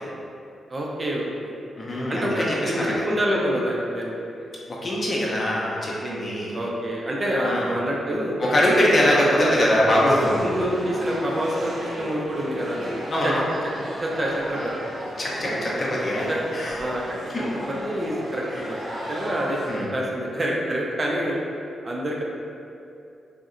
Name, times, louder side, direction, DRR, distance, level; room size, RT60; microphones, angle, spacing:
voice 1, 0.7-1.5 2.1-4.2 6.0-8.4 9.0-9.8 10.4-12.8 13.2-13.3 13.9-14.7 15.4-15.5 16.3-16.4 16.8-17.2 17.5-21.4 21.8-22.2, equal, 40° right, -3 dB, 0.5 m, -27 dB
voice 2, 1.8-3.0 4.7-6.6 7.4-7.8 8.4-10.5 13.1-13.4 15.2-16.7 17.3-17.5 18.5-18.6 19.0-19.1 19.7-19.9, left 1 dB, 50° left, -5 dB, 0.6 m, -23 dB
sound 1, 10.0-19.9, equal, 80° right, 0.7 m, -35 dB
2.6 x 2.1 x 2.4 m, 2.6 s
supercardioid pair, 45°, 0 cm